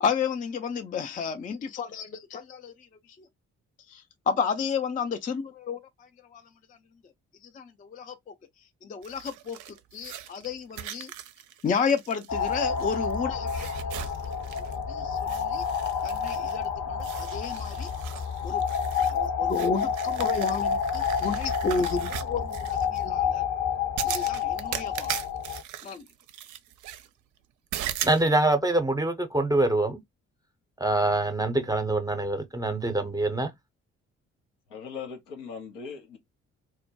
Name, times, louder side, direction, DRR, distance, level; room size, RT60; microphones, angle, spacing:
voice 1, 0.0-2.7 3.9-6.4 7.5-8.2 8.8-11.1 11.6-14.1 14.7-15.6 16.0-17.9 18.4-18.6 19.1-23.4 24.0-25.1 25.8-26.0, left 5 dB, 25° left, 0.4 m, -32 dB
sound 1, 9.0-13.1 13.5-14.8 15.2-16.7 17.0-23.0 24.0-27.1 27.7-28.2, right 11 dB, 55° right, 0.5 m, -39 dB
sound 2, 12.3-25.6, left 7 dB, 55° left, 0.8 m, -29 dB
voice 2, 28.0-30.0 30.8-33.5, right 2 dB, 10° right, 0.7 m, -25 dB
voice 3, 34.7-36.2, left 6 dB, 80° left, 0.7 m, -39 dB
2.2 x 2.1 x 2.7 m
hypercardioid pair, 40°, 36 cm